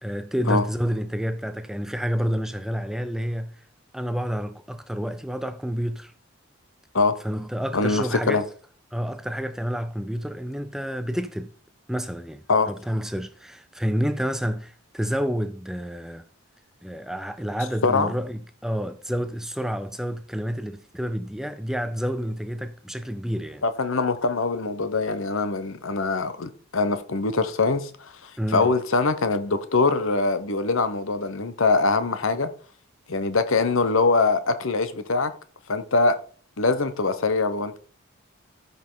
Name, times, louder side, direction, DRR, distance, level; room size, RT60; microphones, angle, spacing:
voice 1, 0.0-3.5 3.9-6.1 7.2-8.4 8.9-11.5 11.9-16.3 16.8-23.6 28.4-28.7, equal, ahead, 0.4 m, -29 dB
voice 2, 7.7-8.4 12.5-12.7 17.8-18.1 23.6-32.5 33.1-35.3 35.7-36.2 36.6-37.8, left 3 dB, 65° left, 1.0 m, -23 dB
13.0 x 5.5 x 3.9 m
head